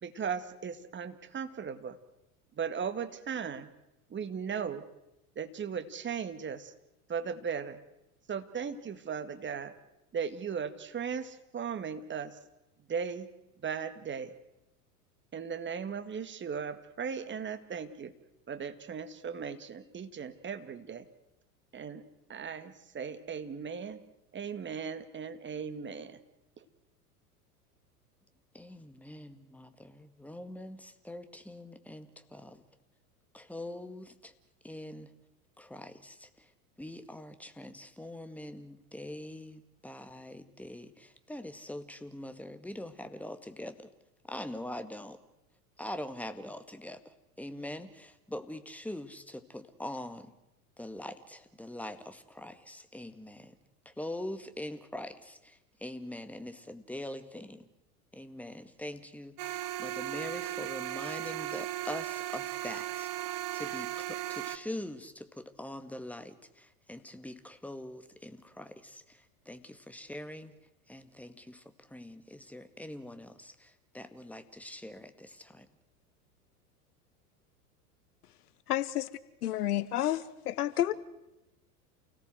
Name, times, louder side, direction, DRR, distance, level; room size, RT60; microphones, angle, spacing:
voice 1, 0.0-2.0 2.5-3.7 4.1-4.9 5.4-6.7 7.1-7.8 8.3-9.8 10.1-12.4 12.8-13.3 13.6-14.3 15.3-18.1 18.5-21.1 21.7-22.0 22.3-24.0 24.3-26.2 26.6-26.7, right 6 dB, 25° right, 1.9 m, -37 dB
voice 2, 28.5-32.6 33.3-34.4 34.6-35.1 35.6-43.9 44.2-45.2 45.8-50.4 50.8-53.6 53.9-57.7 58.1-75.7, left 1 dB, 5° left, 2.1 m, -43 dB
sound 1, 59.4-64.6, right 14 dB, 45° right, 1.8 m, -36 dB
voice 3, 78.7-79.0 79.4-80.9, left 13 dB, 75° left, 1.3 m, -30 dB
29.0 x 17.5 x 7.9 m
hypercardioid pair, 90°, 46 cm